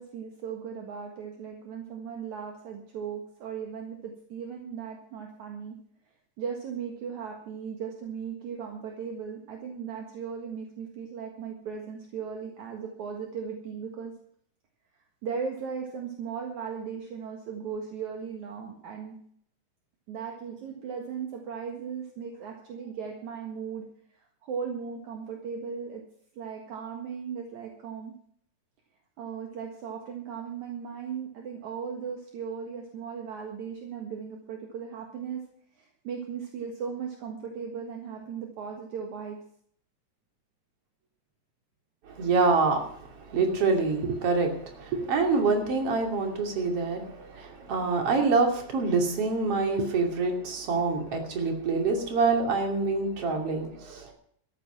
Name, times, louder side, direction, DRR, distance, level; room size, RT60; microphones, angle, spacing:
voice 1, 0.0-5.7 6.4-14.1 15.2-19.2 20.1-23.8 24.1-26.0 26.4-28.1 29.2-35.4 35.7-39.4 53.7-54.1, right 6 dB, 65° right, 2 dB, 3.0 m, -37 dB
voice 2, 42.0-54.1, right 4 dB, 45° right, 3 dB, 3.5 m, -26 dB
13.5 x 11.5 x 6.0 m, 0.63 s
omnidirectional pair, 3.8 m